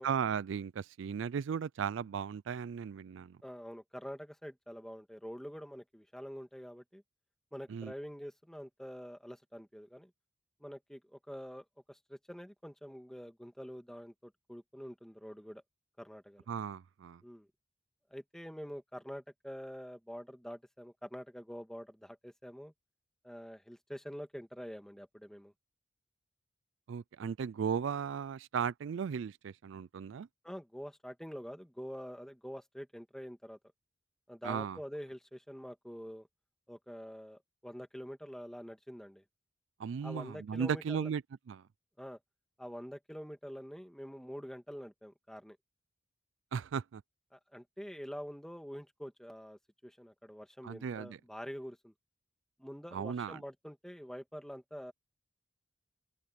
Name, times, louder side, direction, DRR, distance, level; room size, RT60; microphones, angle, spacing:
voice 1, 0.0-3.4 7.7-7.9 16.5-17.2 26.9-30.3 34.4-34.8 39.8-41.2 41.5-41.6 46.5-47.0 50.6-51.2 52.9-53.4, right 7 dB, 70° right, 0.3 m, -36 dB
voice 2, 3.4-7.0 7.5-10.1 10.6-15.6 16.0-16.5 17.2-17.5 18.1-22.7 23.2-25.5 30.4-33.6 34.3-36.3 36.7-39.2 40.0-41.1 42.0-42.2 42.6-45.6 47.3-51.9 52.6-54.9, equal, ahead, 1.9 m, -46 dB
head